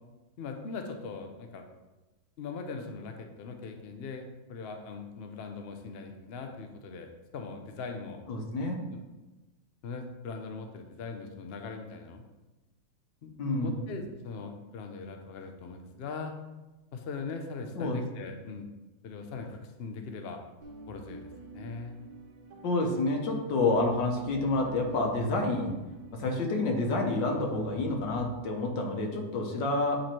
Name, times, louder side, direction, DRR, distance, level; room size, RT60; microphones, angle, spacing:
voice 1, 0.4-1.6 2.4-7.1 7.3-8.2 8.9-9.0 9.8-12.2 13.2-16.3 16.9-18.7 19.0-20.4 20.9-21.3 21.5-22.0, left 4 dB, 65° left, 4 dB, 0.6 m, -40 dB
voice 2, 8.3-8.8 13.4-13.7 17.7-18.0 22.6-25.7 26.1-30.0, left 2 dB, 90° left, 2 dB, 1.7 m, -28 dB
sound 1, 20.6-28.2, right 1 dB, 90° right, 1.6 m, -48 dB
8.7 x 3.1 x 4.3 m, 1.1 s
omnidirectional pair, 1.9 m